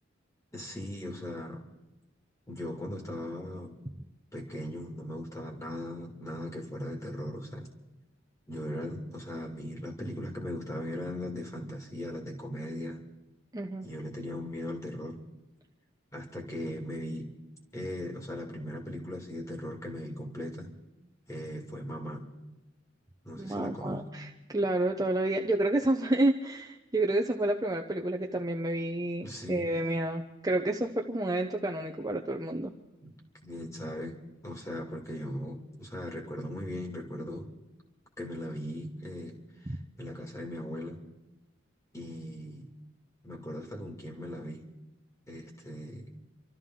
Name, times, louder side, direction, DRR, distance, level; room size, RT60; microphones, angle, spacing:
voice 1, 0.5-1.6 2.5-3.8 4.3-7.7 8.5-13.0 13.8-15.2 16.1-17.3 17.7-20.8 21.3-22.3 23.2-24.0 29.2-29.7 33.0-33.1 33.4-37.5 38.2-39.4 39.7-41.0 41.9-42.7 43.2-44.6 45.3-46.1, left 1 dB, 15° left, 0 dB, 2.2 m, -38 dB
voice 2, 13.5-13.9 23.4-24.3 24.5-32.7, right 1 dB, 20° right, 2 dB, 0.8 m, -29 dB
28.0 x 13.0 x 3.8 m, 1.0 s
head